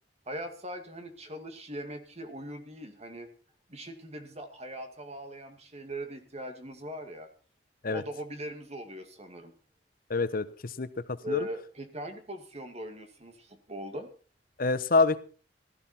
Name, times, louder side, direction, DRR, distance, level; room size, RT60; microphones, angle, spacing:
voice 1, 0.3-3.3 3.7-7.3 7.9-9.5 11.2-14.1, right 1 dB, 40° right, 7 dB, 2.2 m, -40 dB
voice 2, 10.1-11.5 14.6-15.2, left 3 dB, 55° left, 14 dB, 0.9 m, -27 dB
16.5 x 13.5 x 4.4 m, 0.38 s
head